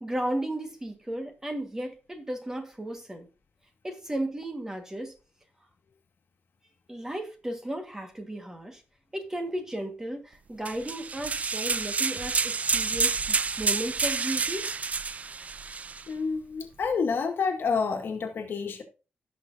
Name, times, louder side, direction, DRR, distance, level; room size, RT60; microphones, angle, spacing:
voice 1, 0.0-3.3 3.8-5.1 6.9-8.8 9.1-14.7, right 1 dB, 15° right, 1.6 m, -34 dB
sound 1, 10.7-16.0, right 5 dB, 35° right, 0.4 m, -29 dB
voice 2, 16.1-18.8, left 5 dB, 65° left, 1.8 m, -28 dB
17.5 x 6.0 x 2.7 m
wide cardioid pair, 135°, 4 cm